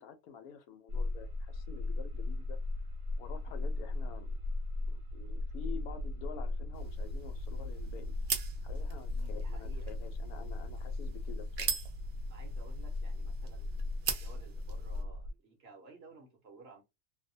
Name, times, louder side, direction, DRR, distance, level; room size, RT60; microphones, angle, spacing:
voice 1, 0.0-2.6 3.2-4.3 4.9-8.1 8.6-11.8, left 7 dB, 90° left, 1.1 m, -49 dB
sound 1, 0.9-15.3, left 2 dB, 75° right, 1.0 m, -37 dB
sound 2, 6.7-15.0, right 7 dB, 90° right, 0.4 m, -42 dB
voice 2, 9.1-10.0 12.3-16.8, right 3 dB, 55° right, 0.8 m, -56 dB
2.6 x 2.1 x 2.6 m
omnidirectional pair, 1.5 m